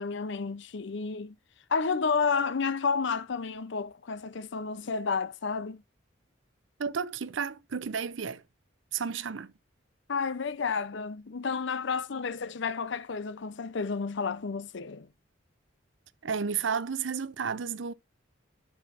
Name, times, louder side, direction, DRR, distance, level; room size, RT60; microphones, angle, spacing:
voice 1, 0.0-1.3 1.7-5.8 10.1-15.1, left 5 dB, 65° left, 0.6 m, -31 dB
voice 2, 6.8-8.4 8.9-9.5 16.2-17.9, right 6 dB, 70° right, 0.6 m, -32 dB
11.0 x 5.6 x 2.5 m
head